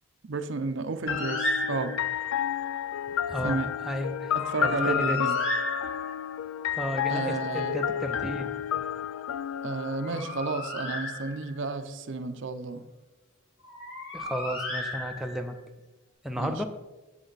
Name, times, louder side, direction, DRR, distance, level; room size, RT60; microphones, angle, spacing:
voice 1, 0.3-1.9 3.4-3.7 4.3-5.4 7.1-7.8 9.6-12.8 16.4-16.6, right 3 dB, 60° right, 9 dB, 0.6 m, -32 dB
sound 1, 1.1-10.9, left 9 dB, 80° left, 0.3 m, -31 dB
Bird, 1.1-2.2 4.3-6.4 9.8-11.7 13.6-15.6, left 1 dB, 65° left, 3.4 m, -34 dB
voice 2, 3.3-5.2 6.7-8.5 14.1-15.5 16.2-16.7, equal, ahead, 3 dB, 0.5 m, -33 dB
7.8 x 7.8 x 4.0 m, 1.1 s
head